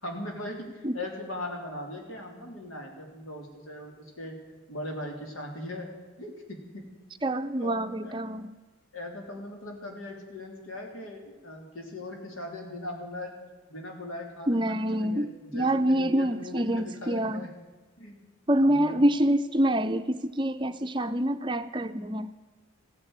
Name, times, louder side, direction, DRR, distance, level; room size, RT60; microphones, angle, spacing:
voice 1, 0.0-4.4 4.7-5.9 6.2-6.8 7.6-7.7 8.0-8.2 8.9-13.4 13.7-17.5 18.0-18.2 18.6-19.0, left 1 dB, 85° left, 2 dB, 3.3 m, -39 dB
voice 2, 7.2-8.5 14.5-17.5 18.5-22.3, right 1 dB, 25° right, 9 dB, 0.5 m, -26 dB
15.5 x 10.5 x 8.8 m, 1.3 s
head